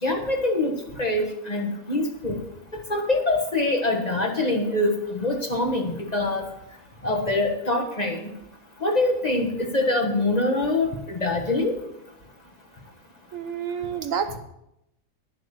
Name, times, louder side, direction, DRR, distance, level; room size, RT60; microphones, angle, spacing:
voice 1, 0.0-0.7 1.0-2.4 2.9-6.4 7.0-8.2 8.8-11.7, left 2 dB, 25° left, 2 dB, 1.4 m, -24 dB
voice 2, 13.3-14.4, right 7 dB, 65° right, 9 dB, 1.0 m, -29 dB
11.0 x 7.5 x 7.0 m, 0.84 s
omnidirectional pair, 1.6 m